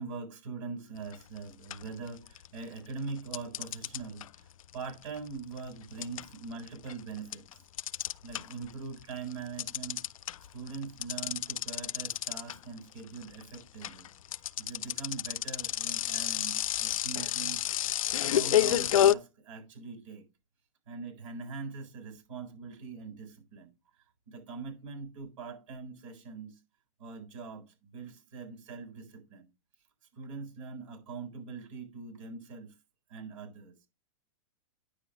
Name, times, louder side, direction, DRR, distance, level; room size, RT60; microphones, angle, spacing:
voice 1, 0.0-7.6 8.0-10.0 10.5-14.1 14.6-17.6 18.2-20.2 20.9-23.7 24.3-26.6 27.0-29.5 30.1-32.7 33.1-33.8, right 4 dB, 70° right, 7.5 m, -42 dB
sound 1, 1.1-1.4 1.7-2.6 3.3-8.7 9.0-19.1, left 11 dB, 80° left, 0.5 m, -30 dB
9.9 x 7.4 x 3.9 m
hypercardioid pair, 120°, 17 cm